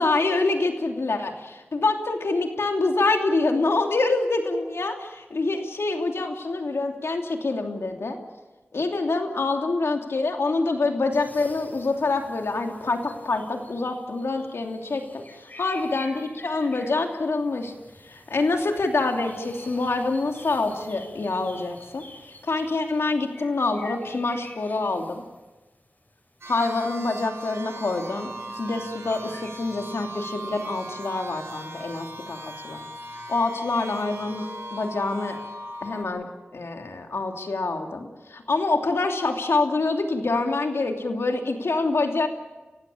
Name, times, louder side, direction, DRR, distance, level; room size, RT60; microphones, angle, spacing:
voice 1, 0.0-8.2 8.7-17.7 18.0-25.2 26.5-32.8 33.3-34.4 34.7-35.4 35.8-36.3 36.5-42.3, left 3 dB, 85° left, 3 dB, 2.9 m, -26 dB
sound 1, 11.1-29.5, left 1 dB, 45° left, 6.7 m, -49 dB
sound 2, 26.4-36.0, right 1 dB, 85° right, 3.7 m, -39 dB
29.5 x 16.0 x 7.3 m, 1.2 s
cardioid pair, 45°, 4 cm